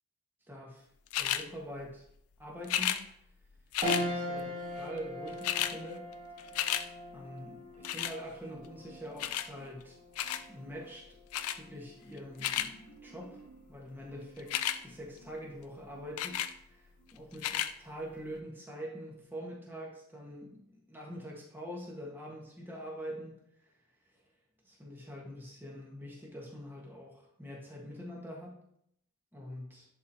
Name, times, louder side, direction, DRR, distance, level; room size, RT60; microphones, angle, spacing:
voice 1, 0.5-0.9 1.2-2.0 2.4-2.9 3.9-6.1 6.4-6.5 7.1-10.0 10.5-11.2 11.5-12.7 13.0-13.4 13.7-23.4 23.6-23.7 24.6-28.6 29.3-29.9, equal, 10° right, -2 dB, 1.3 m, -44 dB
sound 1, 1.1-1.4 2.6-3.0 3.7-4.0 5.0-5.1 5.3-5.7 6.1-6.8 7.8-8.2 9.2-9.5 10.1-10.4 11.3-11.6 12.2-12.7 14.4-14.8 16.2-16.5 17.3-17.7 18.4-18.5, left 11 dB, 80° left, 0.4 m, -32 dB
sound 2, 3.8-13.4 13.9-14.0 15.3-15.8, left 1 dB, 30° right, 1.5 m, -41 dB
Marimba xylophone, 7.4-8.2 8.5-9.9 10.2-11.0 11.3-15.5 15.9-16.6 17.0-17.2, right 3 dB, 35° left, 1.2 m, -58 dB
10.5 x 4.3 x 2.7 m, 0.72 s
head